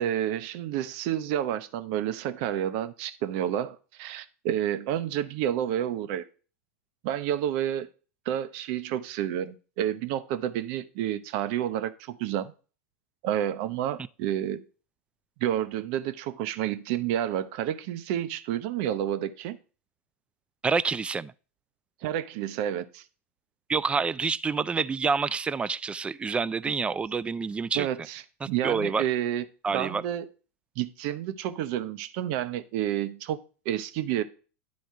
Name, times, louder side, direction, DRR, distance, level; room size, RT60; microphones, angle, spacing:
voice 1, 0.0-6.2 7.0-7.9 8.3-12.5 13.2-14.6 15.4-19.6 22.0-23.0 27.7-29.4 29.7-30.3 30.8-33.4 33.6-34.2, right 11 dB, 60° right, 0.8 m, -30 dB
voice 2, 20.6-21.3 23.7-27.9 28.4-29.0 29.6-30.0, right 5 dB, 15° right, 0.3 m, -27 dB
10.5 x 3.9 x 4.7 m
hypercardioid pair, 110°, 8 cm